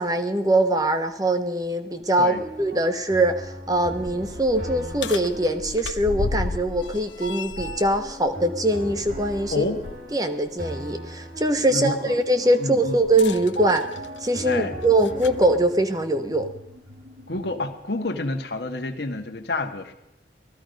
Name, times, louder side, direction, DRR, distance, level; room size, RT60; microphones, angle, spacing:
voice 1, 0.0-9.7 10.1-13.8 14.2-16.5, right 1 dB, 20° right, 8 dB, 1.2 m, -22 dB
sound 1, 2.4-15.7, right 1 dB, 55° right, 3.6 m, -38 dB
sound 2, 4.0-10.0 10.4-10.6 13.0-15.5 16.4-16.5 17.4-17.5, left 4 dB, 85° left, 0.6 m, -35 dB
voice 2, 11.7-12.1 12.6-13.0 14.4-14.8 17.3-19.9, left 2 dB, 65° left, 3 dB, 1.4 m, -28 dB
sound 3, 12.7-17.7, equal, 85° right, 2.0 m, -47 dB
18.5 x 14.5 x 5.2 m, 0.84 s
head